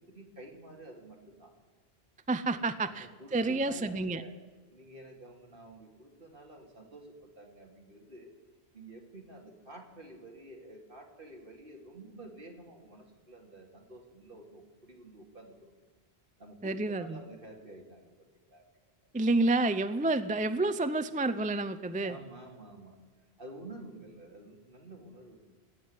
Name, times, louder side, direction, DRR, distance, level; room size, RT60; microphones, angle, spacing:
voice 1, 0.0-1.5 2.5-4.3 4.7-8.3 8.7-15.7 16.4-18.1 18.5-18.6 22.0-23.0 23.4-25.5, right 1 dB, 60° right, 1 dB, 2.8 m, -50 dB
voice 2, 2.3-3.1 3.3-4.2 16.6-17.2 19.1-22.2, right 2 dB, 10° right, 12 dB, 0.4 m, -29 dB
17.5 x 8.4 x 9.5 m, 1.4 s
omnidirectional pair, 1.0 m